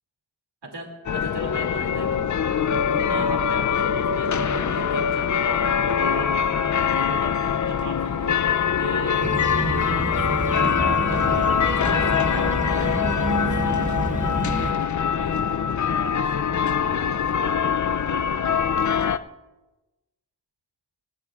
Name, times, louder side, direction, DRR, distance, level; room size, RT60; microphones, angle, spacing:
voice 1, 0.6-2.5 2.9-8.4 8.8-9.3 10.1-14.2 14.7-16.0, right 2 dB, 80° right, 3 dB, 2.5 m, -37 dB
sound 1, 1.1-19.2, left 7 dB, 50° left, 0.5 m, -23 dB
sound 2, 9.2-14.7, right 2 dB, 20° right, 0.7 m, -28 dB
20.5 x 18.0 x 2.4 m, 1.1 s
wide cardioid pair, 75°, 40 cm